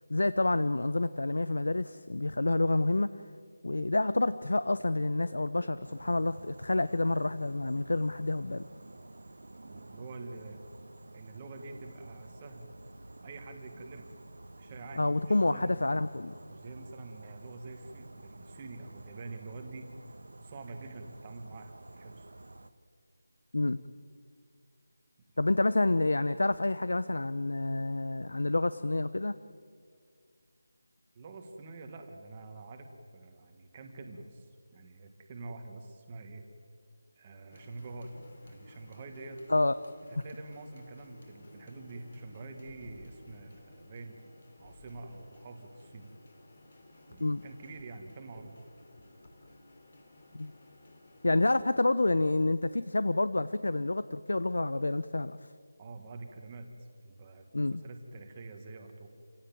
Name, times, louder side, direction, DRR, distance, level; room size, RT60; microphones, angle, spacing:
voice 1, 0.1-3.1 3.6-8.7 15.0-16.4 23.5-23.8 25.4-29.3 39.5-39.7 47.2-47.4 50.3-50.5 51.2-55.4 57.5-57.8, left 2 dB, 80° left, 14 dB, 0.9 m, -28 dB
sound 1, 5.8-22.7, right 2 dB, 75° right, 1.4 m, -51 dB
voice 2, 9.6-10.6 11.1-12.7 13.2-14.1 14.6-15.7 16.5-19.9 20.4-22.3 31.1-34.5 34.7-36.4 37.2-38.1 38.4-39.4 40.1-44.2 44.6-46.1 47.1-48.5 55.8-56.7 57.0-57.5 57.7-59.1, right 3 dB, 15° right, 4 dB, 1.6 m, -46 dB
sound 2, 37.5-51.6, left 1 dB, 35° left, 3.3 m, -56 dB
28.5 x 17.0 x 9.3 m, 2.2 s
figure-of-eight pair, 180°, 0 cm